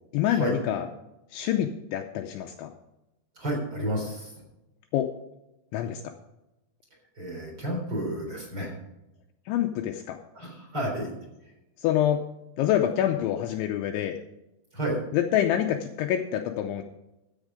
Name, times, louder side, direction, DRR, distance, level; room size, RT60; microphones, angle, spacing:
voice 1, 0.1-0.9 1.3-2.7 4.9-5.1 5.7-6.1 9.5-10.2 11.8-12.2 12.6-14.2 15.1-16.8, left 11 dB, 85° left, 4 dB, 2.7 m, -26 dB
voice 2, 3.4-4.3 7.1-8.7 10.3-11.1 14.7-15.0, right 1 dB, 25° right, -1 dB, 3.7 m, -31 dB
14.0 x 8.2 x 5.0 m, 0.94 s
omnidirectional pair, 5.9 m